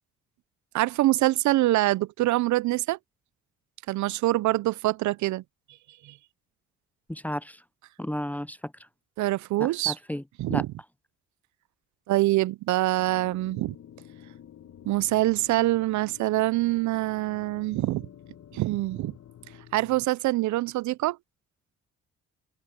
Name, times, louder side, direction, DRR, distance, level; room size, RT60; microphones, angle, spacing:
voice 1, 0.7-3.0 3.9-5.4 6.0-6.1 9.2-10.0 10.4-10.7 12.1-13.7 14.9-18.1 18.5-19.1 19.7-21.2, right 17 dB, 75° right, 0.5 m, -25 dB
voice 2, 7.1-7.6 8.0-8.7 9.9-10.2 10.5-10.6, left 1 dB, 5° left, 0.5 m, -32 dB
sound 1, 13.0-20.0, left 10 dB, 55° left, 1.8 m, -49 dB
cardioid pair, 90°, 30 cm